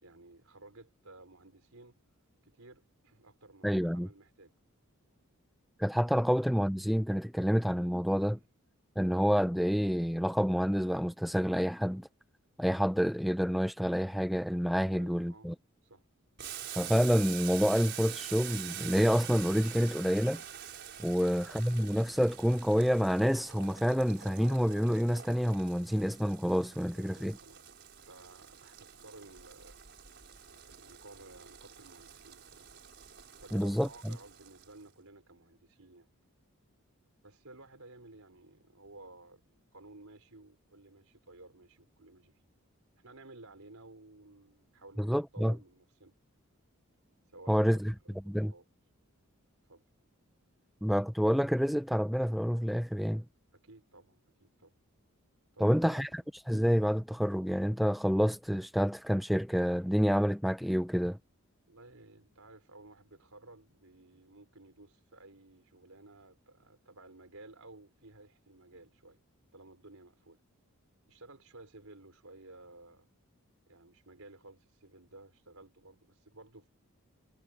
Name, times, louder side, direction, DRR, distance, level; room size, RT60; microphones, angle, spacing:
voice 1, 0.0-2.0 2.4-4.5 8.3-8.4 14.9-15.5 15.8-16.0 26.9-27.7 28.1-29.8 30.7-32.7 33.4-36.1 37.2-39.4 39.7-42.3 43.0-46.1 47.3-48.6 49.7-49.8 53.5-54.7 55.5-56.2 61.7-69.2 69.5-70.4 71.1-73.1 73.7-76.7, right 2 dB, 75° right, 4.4 m, -55 dB
voice 2, 3.6-4.1 5.8-8.4 9.0-12.1 12.6-15.5 16.8-20.4 21.0-27.4 33.5-34.2 45.0-45.6 47.5-47.9 48.3-48.5 50.8-53.2 55.6-56.1 56.5-61.2, equal, ahead, 0.5 m, -28 dB
Boiling, 16.4-34.8, right 10 dB, 50° right, 5.8 m, -46 dB
head